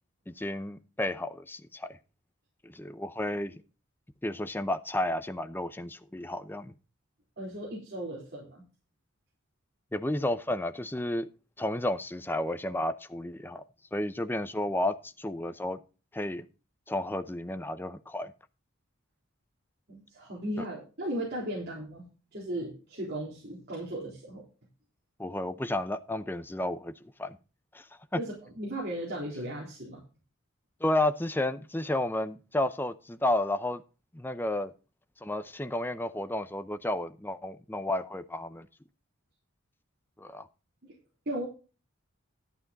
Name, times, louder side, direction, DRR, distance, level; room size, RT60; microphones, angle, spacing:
voice 1, 0.3-2.0 2.6-3.6 4.2-6.7 9.9-11.3 11.6-13.6 13.9-15.8 16.1-16.5 16.9-18.3 20.6-20.7 25.2-26.9 27.2-27.4 27.7-27.9 28.1-28.2 30.8-33.8 34.1-34.7 35.2-38.7 40.2-40.5, left 1 dB, 10° left, 11 dB, 0.6 m, -32 dB
voice 2, 7.4-8.6 19.9-24.4 28.2-30.0 40.8-41.0 41.2-41.5, right 1 dB, 50° right, -4 dB, 3.5 m, -36 dB
11.5 x 8.6 x 4.0 m, 0.33 s
head